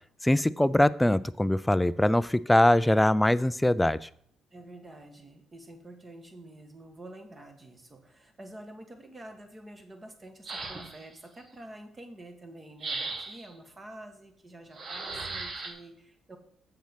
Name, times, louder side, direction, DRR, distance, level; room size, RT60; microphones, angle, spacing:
voice 1, 0.2-4.1, left 1 dB, 10° left, 17 dB, 0.4 m, -23 dB
voice 2, 4.5-16.4, right 1 dB, 25° right, 5 dB, 1.9 m, -48 dB
sound 1, 10.4-11.1 12.8-13.5 14.7-15.7, right 3 dB, 50° right, 1.8 m, -36 dB
7.4 x 7.2 x 5.7 m, 0.65 s
cardioid pair, 90°, 0 cm